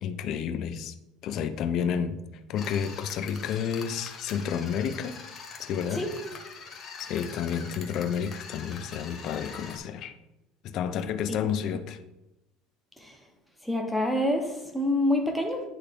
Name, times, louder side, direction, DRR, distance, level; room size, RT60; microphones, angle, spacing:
voice 1, 0.0-0.9 1.2-2.2 2.5-5.2 5.6-6.0 6.6-10.1 10.6-12.0, left 8 dB, 45° left, 0.5 m, -30 dB
sound 1, 2.6-9.8, left 5 dB, 30° left, 1.1 m, -44 dB
voice 2, 13.6-15.7, left 1 dB, ahead, 0.9 m, -27 dB
10.0 x 3.6 x 3.4 m
cardioid pair, 155°, 0 cm